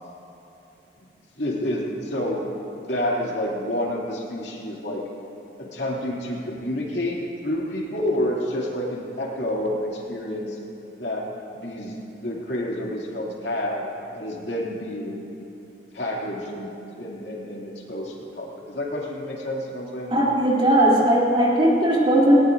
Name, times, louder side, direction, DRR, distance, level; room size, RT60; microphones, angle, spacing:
voice 1, 1.4-2.4 2.9-5.0 5.6-7.2 7.4-10.6 11.0-13.9 14.1-15.3 15.9-20.1, left 1 dB, 75° left, -3 dB, 2.6 m, -29 dB
voice 2, 20.1-22.4, right 1 dB, 30° right, -5 dB, 3.0 m, -18 dB
19.0 x 19.0 x 2.6 m, 2.9 s
head